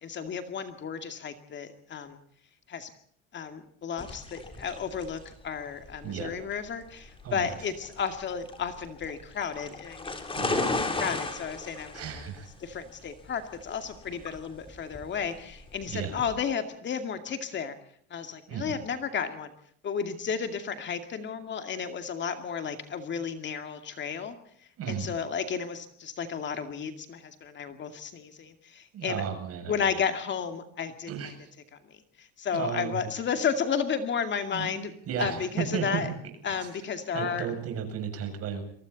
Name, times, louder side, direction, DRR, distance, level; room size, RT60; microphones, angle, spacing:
voice 1, 0.0-2.2 2.7-2.9 3.3-12.0 12.6-17.7 18.1-19.5 19.8-24.4 24.9-29.2 29.7-31.3 31.9-34.9 35.2-36.1 36.4-37.5, left 7 dB, 35° left, 8 dB, 2.3 m, -33 dB
sound 1, 4.0-16.3, left 3 dB, 15° left, 3.4 m, -36 dB
voice 2, 6.0-6.4 7.2-7.5 10.4-10.8 11.9-12.5 15.9-16.2 18.5-18.8 24.8-25.2 28.9-29.7 31.1-31.4 32.5-33.0 34.5-35.4 35.7-36.0 36.5-36.6 37.1-38.6, right 7 dB, 50° right, 6 dB, 7.1 m, -34 dB
29.5 x 23.5 x 4.1 m, 0.64 s
cardioid pair, 135°, 31 cm